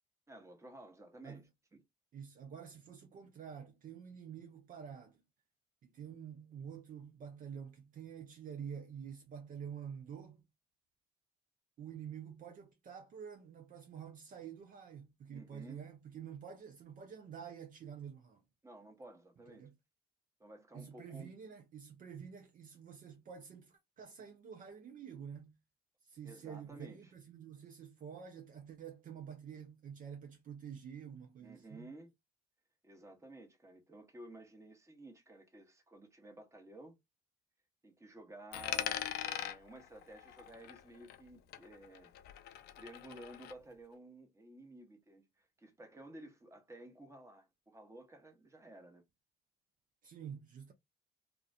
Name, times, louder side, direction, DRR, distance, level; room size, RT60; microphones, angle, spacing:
voice 1, 0.3-1.5 1.7-1.8 15.3-15.9 18.6-19.7 20.4-21.3 26.2-27.1 31.4-32.1 32.8-37.0 37.8-42.1 42.8-49.0, right 1 dB, 15° right, 1.0 m, -54 dB
voice 2, 2.1-5.2 5.8-10.4 11.8-18.4 19.6-19.7 20.7-25.5 26.0-31.9 50.0-50.7, right 7 dB, 45° right, 0.6 m, -48 dB
Coin (dropping), 38.5-41.3 41.5-43.5, left 11 dB, 60° left, 0.4 m, -41 dB
2.3 x 2.2 x 2.4 m
hypercardioid pair, 55°, 18 cm